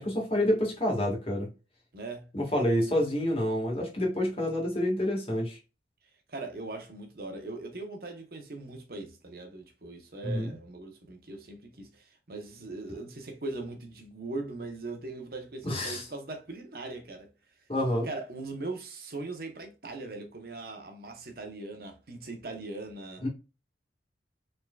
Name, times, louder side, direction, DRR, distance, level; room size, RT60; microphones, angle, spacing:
voice 1, 0.0-1.5 2.3-5.6 10.2-10.5 15.6-16.0 17.7-18.1 23.2-23.3, left 1 dB, 30° left, 1.7 m, -28 dB
voice 2, 1.9-2.3 6.3-17.3 18.0-23.2, right 2 dB, 55° right, 0.9 m, -40 dB
4.6 x 3.8 x 2.3 m
head